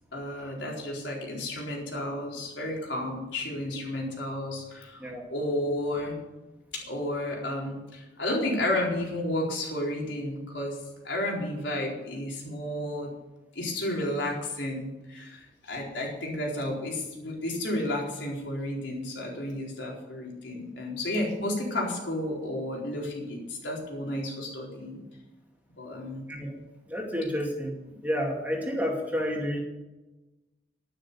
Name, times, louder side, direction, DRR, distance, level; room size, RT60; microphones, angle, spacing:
voice 1, 0.1-6.2 6.7-10.8 11.0-13.1 13.5-25.0 25.8-26.2, left 1 dB, 75° left, -2 dB, 4.3 m, -32 dB
voice 2, 26.9-27.8 28.0-29.6, equal, 10° right, -1 dB, 2.4 m, -30 dB
11.5 x 10.5 x 6.9 m, 1.1 s
head